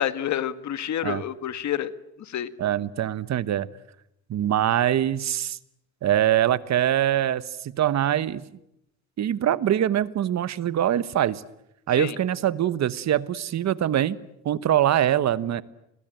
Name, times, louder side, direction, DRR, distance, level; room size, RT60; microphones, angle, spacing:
voice 1, 0.0-1.9 2.2-2.5 12.0-12.2, left 10 dB, 65° left, 13 dB, 1.6 m, -28 dB
voice 2, 2.6-3.7 4.3-5.6 6.0-8.4 9.2-11.4 11.9-14.2 14.4-15.6, right 11 dB, 65° right, 16 dB, 1.2 m, -23 dB
30.0 x 21.5 x 9.2 m, 0.83 s
cardioid pair, 90°, 30 cm